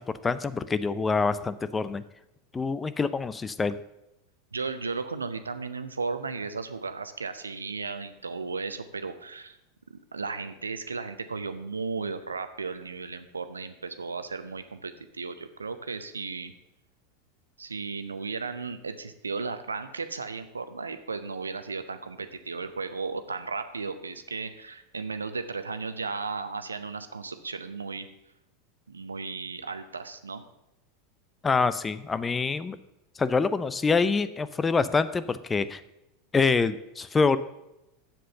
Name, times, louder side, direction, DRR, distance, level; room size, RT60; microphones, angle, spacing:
voice 1, 0.0-2.0 2.5-3.7 31.4-32.8 33.2-35.8 36.3-37.4, left 4 dB, 15° left, 14 dB, 0.5 m, -26 dB
voice 2, 4.5-9.6 9.9-16.5 17.6-28.1 28.9-30.4, right 4 dB, 80° right, 10 dB, 0.7 m, -35 dB
7.8 x 7.6 x 6.8 m, 0.90 s
figure-of-eight pair, 85°, 0 cm